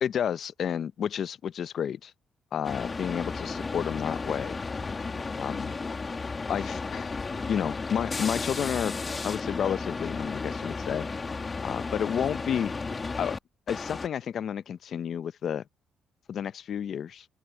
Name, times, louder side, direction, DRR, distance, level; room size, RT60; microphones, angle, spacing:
voice 1, 0.0-2.1 2.5-4.6 5.4-5.7 6.5-7.2 7.5-8.9 9.2-11.1 11.6-12.7 13.2-13.4 13.7-15.6 16.3-17.3, left 8 dB, 60° left, 0.7 m, -31 dB
sound 1, 2.6-13.4 13.7-14.1, left 4 dB, 30° left, 2.5 m, -34 dB
open air
cardioid pair, 90°, 0 cm